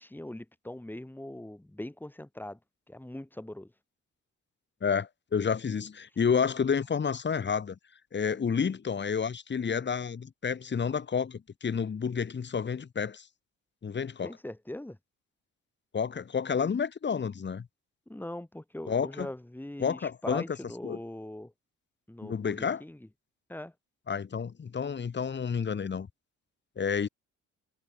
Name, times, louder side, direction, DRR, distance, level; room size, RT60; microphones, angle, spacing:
voice 1, 0.0-2.6 2.9-3.7 6.1-6.2 14.2-15.0 18.1-21.5 22.1-23.1 23.5-23.7, left 1 dB, 5° left, 3.3 m, -41 dB
voice 2, 4.8-7.8 8.1-13.3 13.8-14.3 15.9-17.7 18.9-19.3 19.8-20.4 20.8-21.0 22.2-22.8 24.1-26.1 26.8-27.1, left 6 dB, 35° left, 2.0 m, -30 dB
cardioid pair, 90°, 30 cm